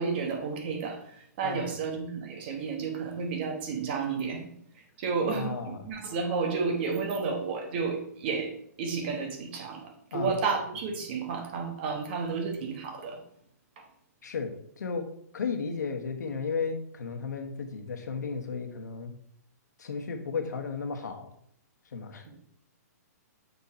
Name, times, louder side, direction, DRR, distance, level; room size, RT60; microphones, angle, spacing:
voice 1, 0.0-13.2 13.8-13.9 22.2-22.4, right 5 dB, 35° right, 4 dB, 1.3 m, -32 dB
voice 2, 5.2-5.8 10.1-10.3 14.2-15.1 15.3-19.1 19.8-21.3 21.9-22.3, left 5 dB, 85° left, 4 dB, 1.3 m, -34 dB
7.0 x 4.1 x 4.2 m, 0.68 s
hypercardioid pair, 165°, 9 cm